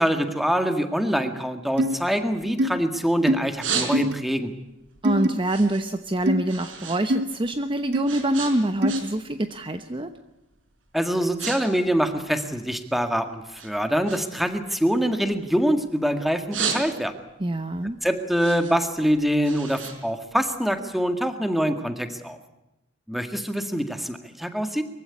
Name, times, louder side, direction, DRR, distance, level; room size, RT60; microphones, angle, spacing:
voice 1, 0.0-4.5 10.9-17.1 18.0-22.4 23.1-24.8, equal, ahead, 7 dB, 1.8 m, -24 dB
sound 1, 1.8-1.9 2.6-2.7 3.3-3.4 3.9-4.1 5.0-5.3 6.3-6.4 7.1-7.2 7.9-8.0 8.8-9.0, equal, 65° right, 1.5 m, -22 dB
sound 2, 2.2-3.0 3.3-4.4 4.8-7.0 7.3-9.3 9.6-10.0 10.6-10.7 11.1-11.6 11.8-13.1 13.6-15.9 16.3-17.3 17.7-20.9, right 6 dB, 85° right, 5.0 m, -33 dB
voice 2, 5.0-10.1 17.4-18.0, right 1 dB, 25° right, 8 dB, 0.9 m, -25 dB
23.0 x 15.5 x 9.8 m, 0.94 s
head